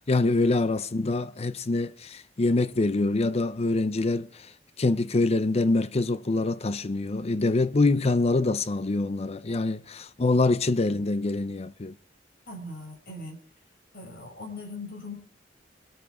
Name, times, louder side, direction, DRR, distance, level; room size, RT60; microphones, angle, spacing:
voice 1, 0.1-4.5 4.8-11.9, left 2 dB, 35° left, 0.6 m, -25 dB
voice 2, 12.5-13.4 13.9-15.1, left 2 dB, 55° left, 6.3 m, -40 dB
24.5 x 8.5 x 4.8 m
head